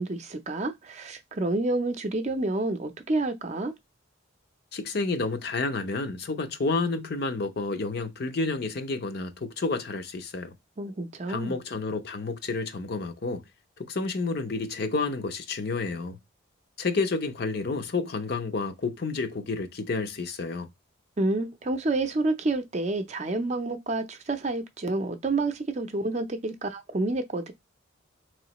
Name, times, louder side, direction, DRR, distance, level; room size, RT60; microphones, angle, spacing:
voice 1, 0.0-3.7 10.8-11.6 21.2-27.5, right 2 dB, 35° right, 0.5 m, -29 dB
voice 2, 4.7-10.5 11.3-13.4 13.8-16.2 16.8-20.7, left 3 dB, 50° left, 0.6 m, -30 dB
4.8 x 3.1 x 2.9 m
head